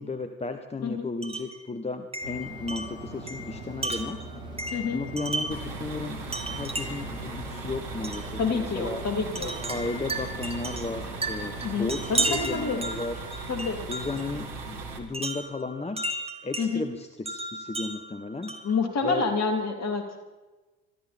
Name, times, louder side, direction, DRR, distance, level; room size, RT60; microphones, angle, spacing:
voice 1, 0.0-4.3 4.9-9.1 9.7-13.2 13.9-16.0 16.4-18.6 19.0-19.3, left 3 dB, 15° left, 7 dB, 1.1 m, -34 dB
Wind chime, 1.2-1.6 2.1-5.7 6.3-7.1 8.0-8.3 9.4-14.3 15.1-16.7 17.3-18.8, right 2 dB, 15° right, 2.0 m, -34 dB
sound 1, 2.2-12.6, right 1 dB, 85° right, 1.9 m, -42 dB
voice 2, 4.7-5.0 8.4-9.5 11.6-12.8 13.5-13.8 16.6-16.8 18.6-20.0, left 4 dB, 40° left, 4 dB, 3.0 m, -28 dB
sound 2, 5.5-15.0, right 3 dB, 65° right, 2.2 m, -38 dB
22.5 x 13.5 x 4.4 m, 1.2 s
figure-of-eight pair, 50°, 39 cm